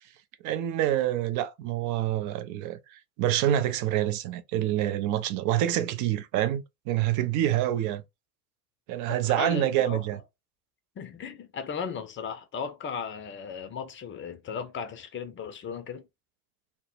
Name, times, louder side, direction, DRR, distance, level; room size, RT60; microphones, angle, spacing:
voice 1, 0.4-2.8 3.2-8.0 8.9-10.2, right 12 dB, 45° right, 0.4 m, -26 dB
voice 2, 9.1-10.0 11.0-16.1, left 6 dB, 25° left, 0.5 m, -36 dB
2.1 x 2.0 x 3.1 m
figure-of-eight pair, 65°, 47 cm